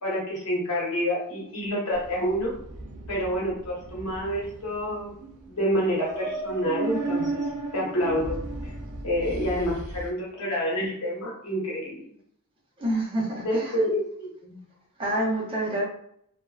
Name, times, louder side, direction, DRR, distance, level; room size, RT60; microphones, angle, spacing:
voice 1, 0.0-2.5 3.1-5.1 5.4-7.4 7.7-8.4 9.0-12.0 13.4-14.6, equal, 90° left, -4 dB, 1.0 m, -28 dB
sound 1, 1.9-10.1, right 2 dB, 80° right, 0.4 m, -35 dB
voice 2, 12.8-13.8 15.0-15.9, right 1 dB, 25° right, -3 dB, 0.6 m, -27 dB
2.5 x 2.1 x 2.3 m, 0.67 s
head